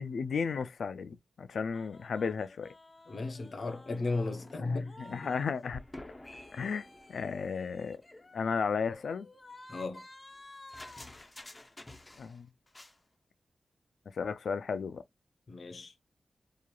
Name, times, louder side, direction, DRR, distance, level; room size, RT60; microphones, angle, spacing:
voice 1, 0.0-2.7 4.7-5.8 6.5-8.0 8.3-9.3 12.2-12.5 14.1-15.0, left 5 dB, 80° left, 0.3 m, -34 dB
sound 1, 1.7-5.5 5.7-12.4 12.7-13.0, left 1 dB, 25° left, 0.6 m, -51 dB
voice 2, 3.1-5.3 9.7-10.0 15.5-15.9, left 3 dB, 60° left, 0.7 m, -35 dB
2.9 x 2.4 x 2.3 m
cardioid pair, 60°, 0 cm